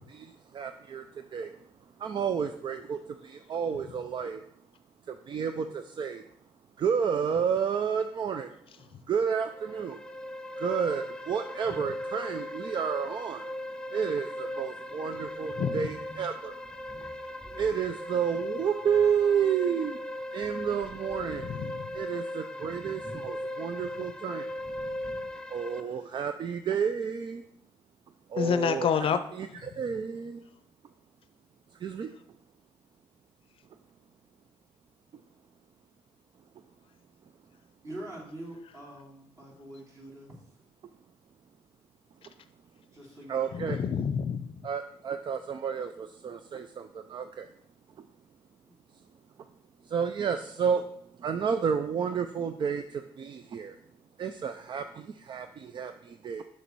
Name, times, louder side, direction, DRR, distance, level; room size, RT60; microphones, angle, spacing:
voice 1, 0.1-1.5 2.0-4.4 5.1-6.2 6.8-8.6 9.1-10.0 10.6-13.5 13.9-16.6 17.6-20.0 20.3-21.5 21.9-24.5 25.5-27.4 28.3-30.4 31.8-32.1 43.3-43.8 44.6-47.5 49.8-50.9 51.2-53.8 54.2-56.4, right 7 dB, 50° right, 0.5 m, -31 dB
sound 1, 9.5-25.8, left 1 dB, 5° left, 0.5 m, -38 dB
sound 2, 14.9-19.9 20.2-22.1 22.5-23.4 23.6-23.7 24.5-25.4, left 1 dB, 10° right, 2.9 m, -51 dB
voice 2, 15.6-15.9 21.4-21.9 28.4-29.2 43.5-44.7, left 7 dB, 60° left, 0.5 m, -28 dB
voice 3, 37.8-40.3 42.9-43.6 48.6-48.8, right 1 dB, 30° right, 3.4 m, -44 dB
6.8 x 6.3 x 4.6 m
cardioid pair, 85°, 10 cm